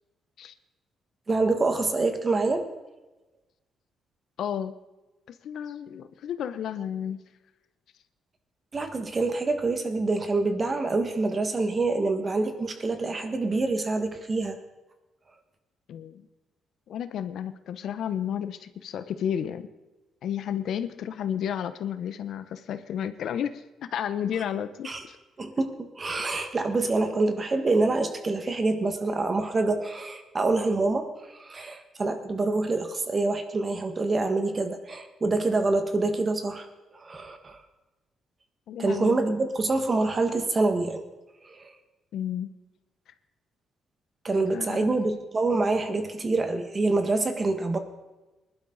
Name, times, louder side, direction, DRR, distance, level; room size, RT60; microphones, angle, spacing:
voice 1, 1.3-2.7 8.7-14.6 24.8-25.0 25.4-36.7 36.9-37.6 38.8-41.0 41.4-41.7 44.2-47.8, right 3 dB, 30° right, 7 dB, 1.7 m, -26 dB
voice 2, 4.4-4.7 5.3-7.2 15.9-16.2 16.9-19.7 20.2-23.6 23.9-25.2 26.4-26.5 38.7-39.2 42.1-42.5 44.5-44.9, left 9 dB, 70° left, 12 dB, 0.8 m, -32 dB
20.0 x 11.5 x 4.0 m, 1.1 s
cardioid pair, 90°, 0 cm